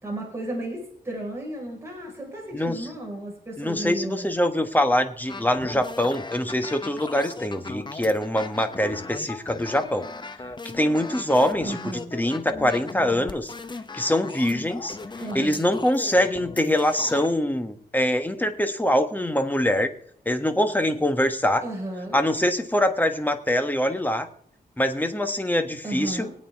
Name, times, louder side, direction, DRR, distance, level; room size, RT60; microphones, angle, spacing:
voice 1, 0.0-4.3 11.6-12.1 15.2-15.6 21.6-22.2 25.8-26.3, right 1 dB, 15° right, -2 dB, 5.0 m, -33 dB
voice 2, 2.5-2.9 3.6-10.1 10.7-13.5 13.9-15.0 15.3-19.9 20.2-21.6 22.1-24.3 24.8-26.3, left 1 dB, 10° left, 7 dB, 1.3 m, -24 dB
sound 1, 5.3-17.3, left 3 dB, 30° left, 0.9 m, -38 dB
24.5 x 8.7 x 3.6 m, 0.64 s
wide cardioid pair, 125°, 16 cm